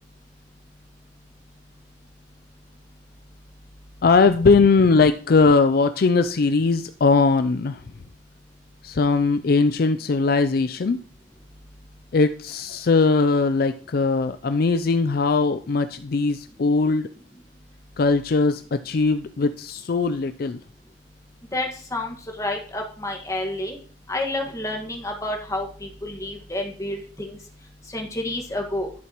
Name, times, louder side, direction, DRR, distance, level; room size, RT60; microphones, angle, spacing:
voice 1, 4.0-7.8 8.8-11.0 12.1-17.1 18.0-20.6, left 4 dB, 60° left, 10 dB, 0.4 m, -20 dB
voice 2, 21.5-23.8 24.1-27.4 27.9-28.9, left 1 dB, 20° left, 2 dB, 1.6 m, -29 dB
11.5 x 7.1 x 3.0 m, 0.42 s
head